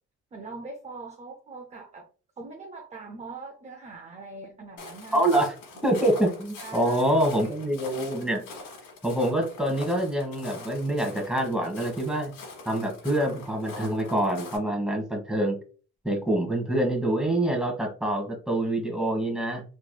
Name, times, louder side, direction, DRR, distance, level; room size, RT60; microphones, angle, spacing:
voice 1, 0.3-2.1 2.4-5.3 5.7-5.8 6.6-7.3, right 3 dB, 25° right, 3 dB, 0.5 m, -42 dB
Walk footsteps, 4.8-14.6, left 3 dB, 85° left, 1.3 m, -43 dB
voice 2, 5.1-5.6 5.8-8.4 9.0-12.3 12.6-15.6 16.0-19.6, right 1 dB, ahead, 1 dB, 1.3 m, -26 dB
3.4 x 3.1 x 2.2 m, 0.38 s
cardioid pair, 90°, 30 cm